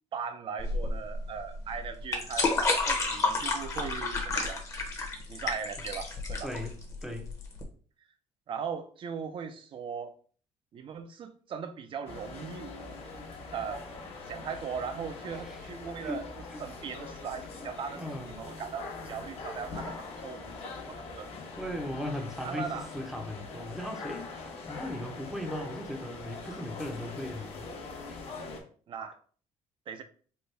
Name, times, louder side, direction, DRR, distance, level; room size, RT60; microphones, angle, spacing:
voice 1, 0.1-4.7 5.3-6.5 8.5-10.1 10.7-12.7 13.5-13.8 14.2-16.2 16.6-21.3 22.4-22.9 28.9-29.2 29.9-30.0, right 6 dB, 45° right, 0.5 m, -39 dB
sound 1, 0.6-7.6, left 3 dB, 25° left, 0.9 m, -30 dB
voice 2, 6.4-7.3 15.3-15.6 16.0-16.2 16.5-16.6 17.3-17.7 18.0-18.4 21.6-27.7 28.1-28.2, left 1 dB, 5° right, 0.7 m, -38 dB
sound 2, 12.1-28.6, left 3 dB, 55° left, 1.0 m, -42 dB
4.3 x 2.2 x 3.3 m
cardioid pair, 135°, 12 cm